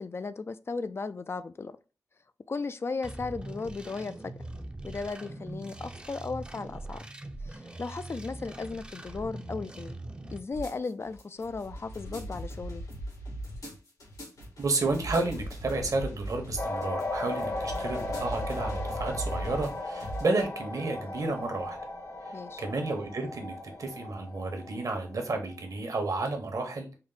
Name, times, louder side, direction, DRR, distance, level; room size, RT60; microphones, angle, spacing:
voice 1, 0.0-1.8 2.5-4.3 4.8-7.1 7.4-10.0 10.3-12.8 22.3-22.6, left 4 dB, 40° left, 0.3 m, -36 dB
sound 1, 3.0-10.4, right 1 dB, 15° right, 0.5 m, -42 dB
sound 2, 10.5-20.4, right 1 dB, 90° left, 2.3 m, -39 dB
voice 2, 14.6-21.8 22.2-26.9, right 3 dB, 60° right, 1.0 m, -31 dB
sound 3, 16.6-25.6, left 2 dB, 60° left, 1.0 m, -37 dB
4.5 x 2.0 x 3.8 m
cardioid pair, 70°, 6 cm